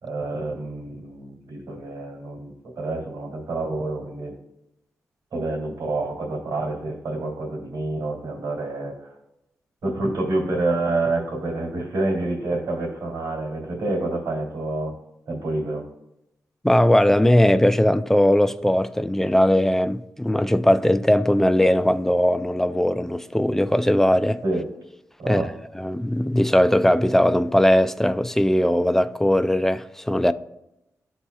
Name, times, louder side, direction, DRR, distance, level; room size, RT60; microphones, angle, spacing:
voice 1, 0.0-4.3 5.3-9.2 9.8-15.0 15.3-15.8 24.4-24.7 25.2-25.5, right 2 dB, 85° right, 2.5 m, -28 dB
voice 2, 16.6-24.4 25.3-25.5 25.7-30.3, left 1 dB, 5° left, 0.3 m, -19 dB
12.0 x 4.1 x 2.3 m
cardioid pair, 90°, 6 cm